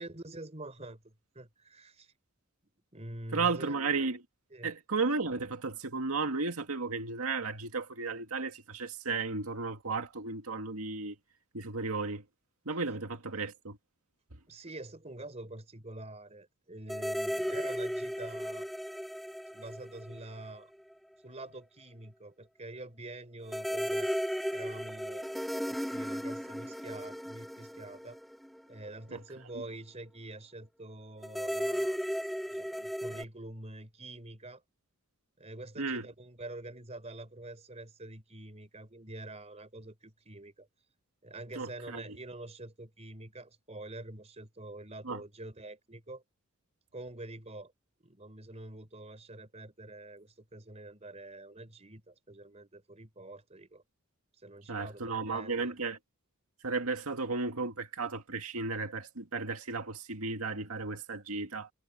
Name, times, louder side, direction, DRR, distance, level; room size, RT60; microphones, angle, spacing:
voice 1, 0.0-2.1 2.9-3.7 4.5-4.7 14.5-18.7 19.5-20.7 21.2-24.1 24.5-25.3 25.7-28.2 28.7-32.0 32.5-34.6 35.4-40.7 41.2-46.2 46.9-47.7 48.0-53.8 54.4-55.7, right 2 dB, 30° right, 4.3 m, -46 dB
voice 2, 3.3-4.2 4.6-11.2 11.5-12.2 12.7-13.8 29.1-29.2 29.5-29.6 35.8-36.0 41.5-42.2 45.0-45.2 54.7-56.0 56.6-61.7, right 4 dB, 90° right, 2.0 m, -34 dB
sound 1, 16.9-20.6 20.9-21.0 23.5-28.9 31.2-33.2, equal, ahead, 0.6 m, -35 dB
head